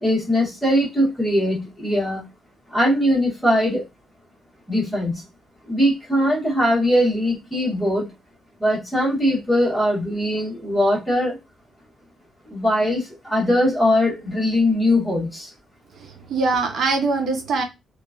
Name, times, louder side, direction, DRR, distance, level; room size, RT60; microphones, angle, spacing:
voice 1, 0.0-2.2 2.7-3.8 4.7-5.2 5.7-8.1 8.6-11.4 12.5-15.5, left 1 dB, 10° left, -5 dB, 1.3 m, -21 dB
voice 2, 16.0-17.6, right 3 dB, 60° right, 3 dB, 0.6 m, -23 dB
2.9 x 2.3 x 2.4 m, 0.23 s
cardioid pair, 155°, 0 cm